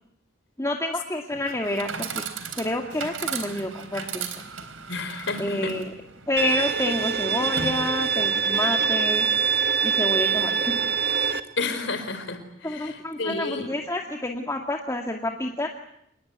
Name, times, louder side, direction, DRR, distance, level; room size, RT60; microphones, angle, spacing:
voice 1, 0.6-2.2 2.5-4.4 5.4-5.9 6.3-9.3 9.8-10.8 12.6-15.7, left 1 dB, 15° left, 2 dB, 2.2 m, -28 dB
Chatter / Coin (dropping), 1.3-8.3, right 6 dB, 80° right, 4.0 m, -37 dB
voice 2, 4.9-5.8 11.6-13.7, left 3 dB, 65° left, 10 dB, 4.7 m, -31 dB
Bowed string instrument, 6.4-11.4, right 6 dB, 50° right, 1.6 m, -24 dB
27.0 x 21.0 x 9.6 m, 0.75 s
head